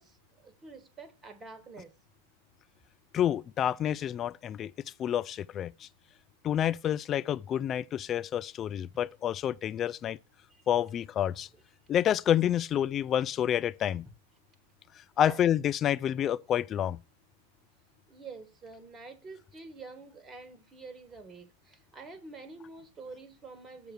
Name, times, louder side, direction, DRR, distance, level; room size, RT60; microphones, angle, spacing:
voice 1, 0.0-1.9 10.5-10.6 15.2-15.4 16.2-16.3 18.1-23.9, right 3 dB, 20° right, 1.5 m, -47 dB
voice 2, 3.1-4.7 5.0-5.9 6.4-10.2 10.7-11.5 11.9-14.0 15.2-17.0, left 10 dB, 30° left, 0.3 m, -28 dB
7.7 x 4.6 x 6.3 m
figure-of-eight pair, 90°, 0 cm